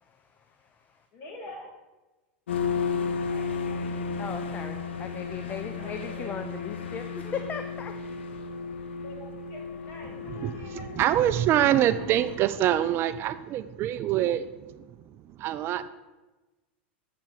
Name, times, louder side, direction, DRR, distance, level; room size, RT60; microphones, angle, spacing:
voice 1, 0.0-1.1 4.2-8.1, left 6 dB, 25° left, 8 dB, 0.5 m, -38 dB
voice 2, 1.1-1.7 3.2-5.0 5.4-6.8 9.0-10.9, left 1 dB, 45° left, -1 dB, 2.6 m, -47 dB
sound 1, 2.5-12.4, left 5 dB, 90° left, 0.7 m, -34 dB
voice 3, 10.4-15.9, right 12 dB, 40° right, 13 dB, 0.3 m, -26 dB
7.6 x 4.5 x 5.6 m, 1.1 s
hypercardioid pair, 110°, 6 cm